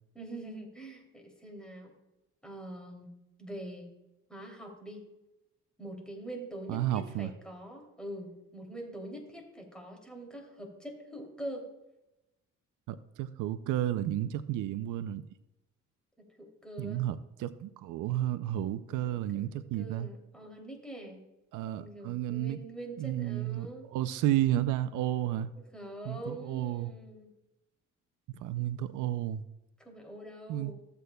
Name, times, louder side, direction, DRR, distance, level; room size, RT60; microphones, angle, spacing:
voice 1, 0.1-1.9 2.4-3.9 4.3-5.1 5.8-11.7 16.2-17.0 18.9-21.2 21.8-23.9 25.7-27.3 29.8-30.7, right 1 dB, 5° left, 1 dB, 2.8 m, -44 dB
voice 2, 6.7-7.3 12.9-15.2 16.8-20.1 21.5-22.6 23.0-25.5 26.1-26.9 28.4-29.4 30.5-30.7, right 13 dB, 85° right, 14 dB, 0.5 m, -32 dB
14.5 x 8.0 x 2.3 m, 0.94 s
cardioid pair, 90°, 30 cm